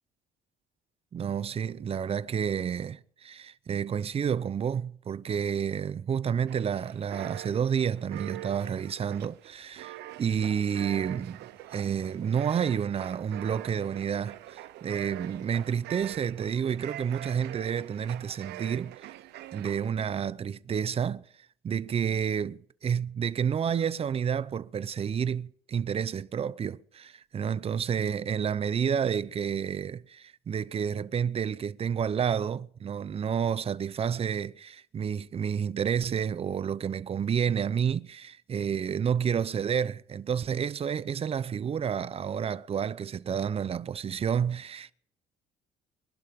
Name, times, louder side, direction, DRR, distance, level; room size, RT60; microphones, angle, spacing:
voice 1, 1.1-11.4 11.7-19.0 19.5-21.2 21.6-44.9, right 7 dB, 35° right, 0.7 m, -30 dB
sound 1, 6.5-19.9, right 15 dB, 80° right, 0.9 m, -44 dB
24.5 x 11.5 x 3.7 m
cardioid pair, 110°, 17 cm